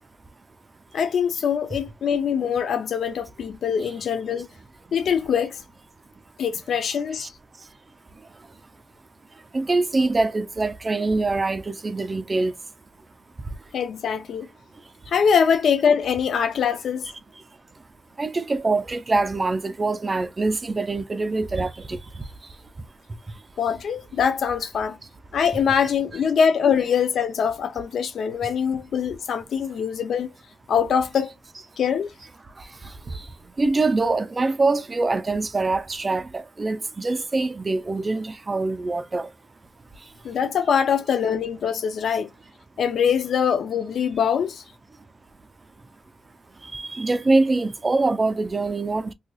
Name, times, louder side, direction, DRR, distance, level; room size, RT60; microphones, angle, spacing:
voice 1, 0.9-4.5 4.9-5.6 6.4-7.3 13.7-14.5 15.1-17.1 23.6-25.0 25.3-30.3 30.7-31.3 31.8-32.1 40.2-42.3 42.8-44.6, left 7 dB, 75° left, 0.4 m, -23 dB
voice 2, 9.5-12.5 18.2-22.0 33.6-39.3 46.7-49.1, right 3 dB, 25° right, 0.4 m, -24 dB
4.0 x 2.7 x 2.3 m
wide cardioid pair, 160°, 0 cm